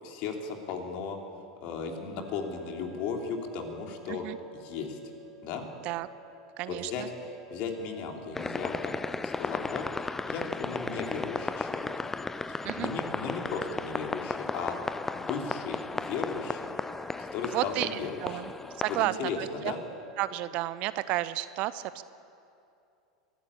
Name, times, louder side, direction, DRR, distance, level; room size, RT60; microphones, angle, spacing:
voice 1, 0.0-1.2 1.6-4.3 4.6-5.0 5.4-5.7 6.7-7.0 7.5-12.0 12.5-14.7 15.1-16.7 17.2-18.1 19.0-19.8, left 5 dB, 50° left, 3 dB, 3.2 m, -36 dB
sound 1, 1.9-20.5, right 2 dB, 5° right, 2.2 m, -52 dB
voice 2, 6.6-7.1 12.6-12.9 17.5-19.7 20.2-22.0, right 16 dB, 45° right, 15 dB, 0.7 m, -32 dB
sound 2, 8.4-19.1, left 3 dB, 10° left, 0.5 m, -35 dB
23.5 x 15.5 x 8.6 m, 2.6 s
figure-of-eight pair, 85°, 3 cm